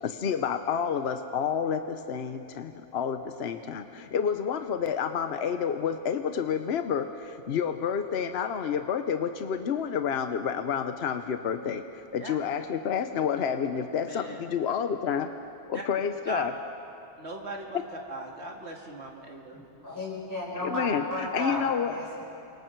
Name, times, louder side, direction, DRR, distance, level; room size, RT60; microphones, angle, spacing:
voice 1, 0.0-15.3 15.7-16.5 17.7-17.8 20.6-21.9, left 7 dB, 65° left, 8 dB, 1.0 m, -29 dB
voice 2, 14.1-14.4 15.7-15.8 16.3-16.4 17.2-17.8 18.1-19.6, right 2 dB, 70° right, 0 dB, 2.4 m, -39 dB
voice 3, 19.5-22.2, left 1 dB, 15° left, -6 dB, 4.7 m, -34 dB
28.5 x 25.0 x 4.7 m, 2.7 s
omnidirectional pair, 1.2 m